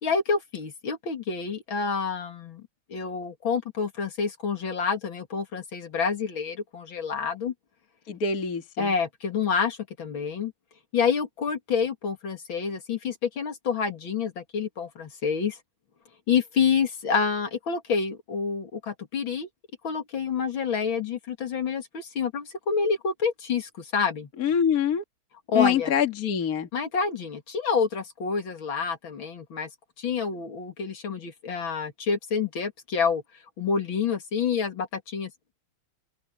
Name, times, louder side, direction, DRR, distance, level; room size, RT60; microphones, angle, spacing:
voice 1, 0.0-2.6 2.9-7.5 8.8-10.5 10.9-15.6 16.3-19.5 19.8-24.3 25.5-25.9 26.7-29.7 30.0-33.2 33.6-35.3, left 6 dB, 70° left, 3.0 m, -28 dB
voice 2, 8.1-8.9 24.4-25.0 25.5-26.7, left 8 dB, 45° left, 2.0 m, -25 dB
open air
omnidirectional pair, 2.3 m